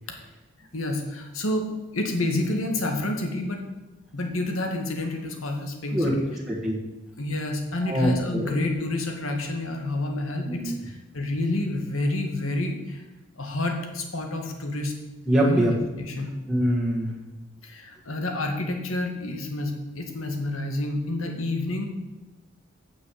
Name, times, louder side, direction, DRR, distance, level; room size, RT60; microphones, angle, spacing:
voice 1, 0.7-1.7 1.9-3.6 4.1-6.3 7.2-13.0 13.3-14.9 15.4-16.4 17.6-21.9, left 1 dB, 85° left, 3 dB, 2.0 m, -29 dB
voice 2, 5.9-6.8 7.8-8.5 10.5-10.8 15.3-15.7 16.5-17.2, equal, ahead, -6 dB, 1.6 m, -24 dB
9.1 x 6.7 x 8.4 m, 1.1 s
head